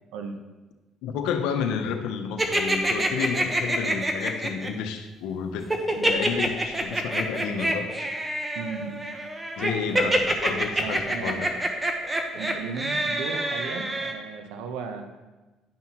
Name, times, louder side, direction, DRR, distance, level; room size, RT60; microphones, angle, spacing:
voice 1, 1.0-7.9 9.6-11.5, left 6 dB, 80° left, 6 dB, 0.7 m, -31 dB
sound 1, 2.4-4.7 5.7-14.1, right 1 dB, 15° right, 1.1 m, -26 dB
voice 2, 8.5-9.0 9.9-10.2 10.8-11.5 12.3-15.1, right 5 dB, 85° right, 5 dB, 0.9 m, -36 dB
10.5 x 5.6 x 3.0 m, 1.2 s
supercardioid pair, 80°, 0 cm